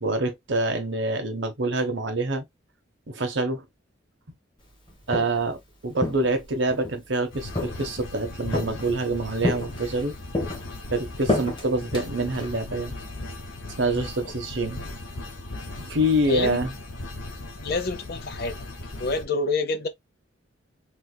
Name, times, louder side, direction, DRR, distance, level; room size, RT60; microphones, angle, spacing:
voice 1, 0.0-2.4 3.1-3.6 5.1-10.1 10.9-12.9 13.8-14.8 15.8-16.7, right 1 dB, 70° right, 0.9 m, -26 dB
Walk footsteps, 4.9-5.5 6.0-7.0 7.6-8.1 8.5-9.1 9.4-10.0 10.3-12.6, left 2 dB, 25° left, 1.1 m, -30 dB
sound 1, 7.3-19.3, left 2 dB, 90° left, 1.1 m, -38 dB
voice 2, 16.3-16.6 17.6-18.7 19.0-19.9, left 3 dB, 55° left, 0.6 m, -28 dB
3.3 x 3.3 x 2.2 m
head